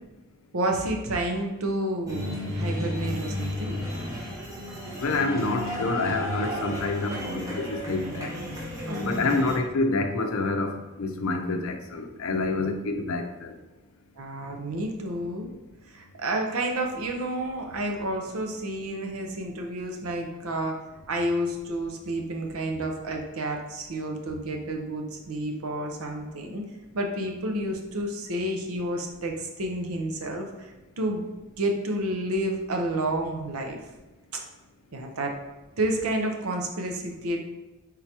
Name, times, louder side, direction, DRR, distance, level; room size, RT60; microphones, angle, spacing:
voice 1, 0.5-3.7 8.9-9.4 12.5-12.6 14.2-15.5 15.9-20.8 21.1-26.6 26.9-31.2 31.6-33.8 34.9-35.3 35.8-37.4, right 1 dB, 80° right, 2 dB, 0.7 m, -30 dB
sound 1, 2.1-9.6, left 1 dB, 15° right, 0.8 m, -33 dB
voice 2, 5.0-8.3 9.0-13.5, left 3 dB, 70° left, 5 dB, 0.5 m, -27 dB
3.7 x 2.9 x 4.5 m, 1.1 s
head